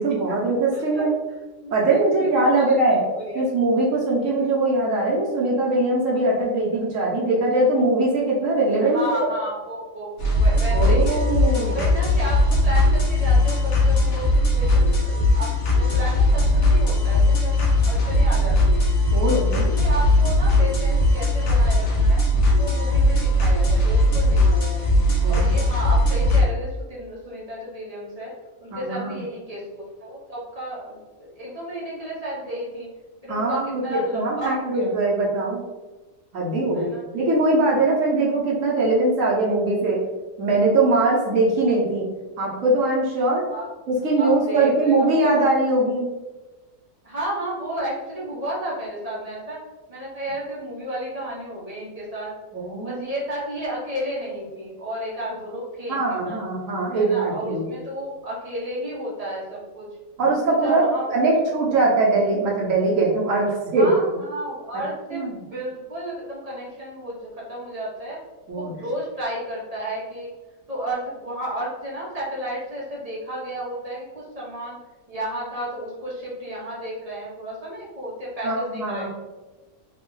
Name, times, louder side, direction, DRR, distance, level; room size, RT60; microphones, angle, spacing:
voice 1, 0.0-1.1 1.7-3.0 3.3-9.0 10.7-11.9 19.1-19.7 25.2-25.5 28.7-29.2 33.3-35.6 36.3-40.0 40.4-42.1 42.4-43.5 43.9-46.1 52.5-53.0 55.9-57.6 60.2-60.8 61.1-63.5 63.7-63.9 65.1-65.3 68.5-68.7 78.4-79.1, right 2 dB, 65° right, -3 dB, 1.2 m, -21 dB
voice 2, 0.7-1.1 1.6-3.4 4.2-4.5 8.8-11.2 11.6-18.9 19.3-22.2 22.6-24.8 25.3-28.3 28.6-32.9 33.2-35.0 36.7-37.0 43.5-43.7 44.1-45.4 47.0-49.6 49.9-52.3 52.8-56.4 56.9-59.9 60.5-61.1 63.4-68.2 68.5-70.3 70.7-74.8 75.1-79.1, right 1 dB, 30° right, -6 dB, 0.8 m, -32 dB
sound 1, 10.2-26.4, left 1 dB, 45° left, 1.0 m, -19 dB
3.4 x 2.4 x 3.7 m, 1.2 s
omnidirectional pair, 1.5 m